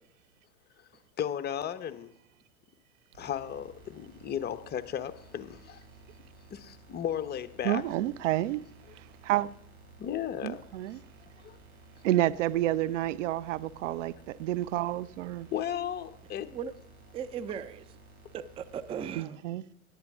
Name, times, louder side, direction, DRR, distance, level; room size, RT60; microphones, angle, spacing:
voice 1, 1.2-2.1 3.2-5.8 6.5-7.8 10.0-10.6 11.4-11.6 15.5-16.5, left 9 dB, 25° left, 0.9 m, -35 dB
sound 1, 3.1-19.1, right 2 dB, 90° right, 4.3 m, -55 dB
voice 2, 7.6-8.6 9.2-9.5 10.4-11.0 12.0-15.5 19.1-19.6, right 14 dB, 60° right, 0.7 m, -29 dB
voice 3, 17.1-18.0 18.3-19.4, right 7 dB, 15° right, 0.5 m, -37 dB
17.5 x 11.0 x 3.6 m
hypercardioid pair, 100°, 41 cm